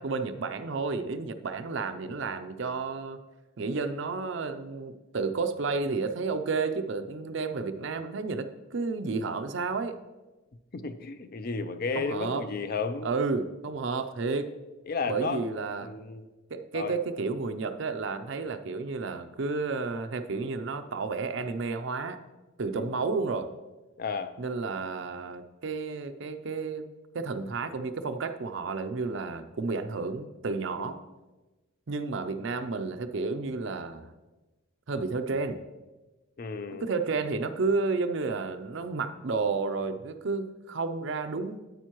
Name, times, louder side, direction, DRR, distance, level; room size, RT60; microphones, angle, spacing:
voice 1, 0.0-3.2 3.6-10.0 11.9-12.5 13.0-14.5 15.1-15.9 16.5-22.2 22.6-23.5 24.4-26.9 27.1-31.0 31.9-34.1 34.9-35.6 36.7-41.6, right 4 dB, 55° right, 10 dB, 0.5 m, -31 dB
voice 2, 10.7-13.1 14.9-15.4 15.8-16.3 16.7-16.9 22.7-23.0 24.0-24.3 30.8-31.0 36.4-36.9, left 4 dB, 45° left, 10 dB, 0.4 m, -33 dB
9.2 x 9.0 x 3.0 m, 1.2 s
head